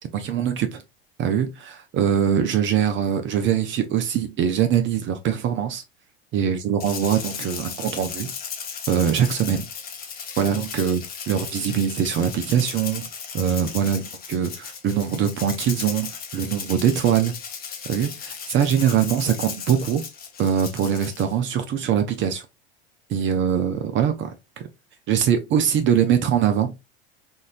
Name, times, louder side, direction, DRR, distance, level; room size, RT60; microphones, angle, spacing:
voice 1, 0.1-0.8 1.2-5.8 6.3-8.3 8.9-9.7 10.4-13.1 13.3-17.4 17.9-20.0 20.4-22.5 23.1-24.7 25.1-26.7, right 8 dB, 40° right, 0.7 m, -22 dB
Rattle (instrument), 6.8-21.3, left 6 dB, 30° left, 0.9 m, -36 dB
3.8 x 2.5 x 2.5 m
hypercardioid pair, 85°, 30 cm